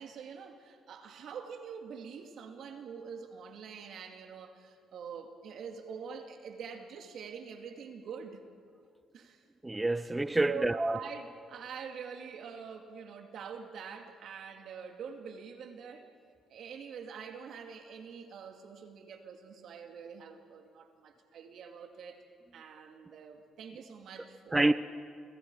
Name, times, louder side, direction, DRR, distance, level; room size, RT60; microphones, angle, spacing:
voice 1, 0.0-8.4 9.1-9.4 10.4-16.1 16.5-22.2 22.5-24.7, right 6 dB, 70° right, 4 dB, 2.7 m, -45 dB
voice 2, 9.6-11.0 24.5-24.7, right 2 dB, 15° right, 12 dB, 0.6 m, -27 dB
30.0 x 25.5 x 4.9 m, 2.3 s
cardioid pair, 90°, 0 cm